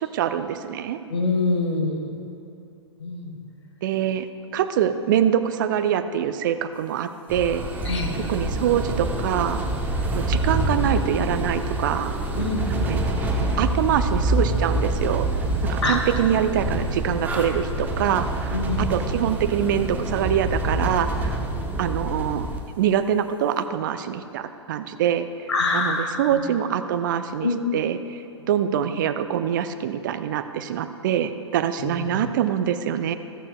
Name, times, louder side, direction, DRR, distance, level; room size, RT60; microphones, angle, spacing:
voice 1, 0.0-1.0 3.8-4.3 4.5-7.6 8.3-9.6 10.1-12.2 12.7-13.0 13.6-15.3 15.7-21.4 21.8-22.5 22.8-28.2 28.5-33.1, right 9 dB, 45° right, 10 dB, 0.6 m, -24 dB
voice 2, 1.1-2.0 3.0-3.3 7.9-8.1 12.4-13.0 15.8-16.0 18.5-18.9 25.5-26.4 27.4-27.6 31.8-32.2, left 3 dB, 70° left, 2 dB, 1.8 m, -25 dB
sound 1, 7.3-22.6, right 1 dB, 10° right, 1.0 m, -26 dB
14.5 x 13.5 x 2.3 m, 2.6 s
figure-of-eight pair, 110°, 15 cm